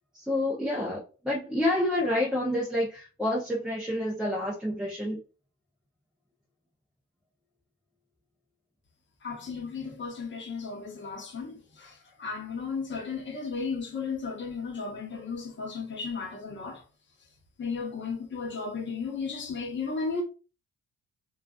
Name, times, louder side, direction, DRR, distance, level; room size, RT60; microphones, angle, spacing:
voice 1, 0.1-5.2, left 1 dB, ahead, 0.5 m, -28 dB
voice 2, 9.2-16.8 17.6-20.2, left 5 dB, 40° left, 0.8 m, -34 dB
2.4 x 2.3 x 2.3 m
cardioid pair, 90°, 30 cm